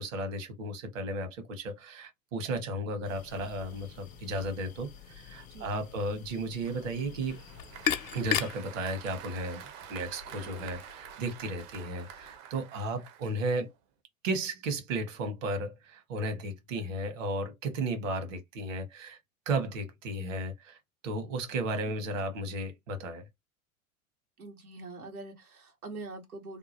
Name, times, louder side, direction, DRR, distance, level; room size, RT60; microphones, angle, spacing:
voice 1, 0.0-7.4 8.1-9.6 9.9-13.7 14.2-19.2 19.5-20.8 21.0-23.3, right 2 dB, 60° right, 1.2 m, -34 dB
sound 1, 3.0-8.4, left 8 dB, 20° left, 0.4 m, -51 dB
voice 2, 5.5-5.8 24.4-26.6, right 3 dB, 85° right, 1.2 m, -44 dB
Applause, 6.6-13.8, right 9 dB, 40° right, 0.6 m, -48 dB
sound 2, 7.3-12.4, left 9 dB, 70° left, 0.6 m, -37 dB
2.8 x 2.2 x 2.8 m
figure-of-eight pair, 90°, 43 cm